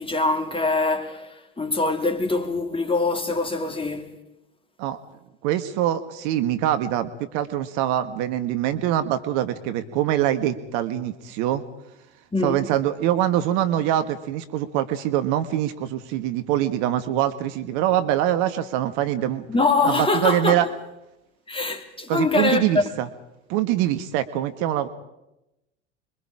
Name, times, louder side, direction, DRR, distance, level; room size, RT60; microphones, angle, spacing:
voice 1, 0.0-4.1 12.3-12.6 19.5-20.6 21.5-22.8, left 3 dB, 15° left, 3.0 m, -23 dB
voice 2, 5.4-11.6 12.4-19.5 19.8-20.7 22.1-23.1 23.5-24.9, right 12 dB, 55° right, 1.6 m, -24 dB
26.5 x 23.5 x 5.0 m
figure-of-eight pair, 75°, 35 cm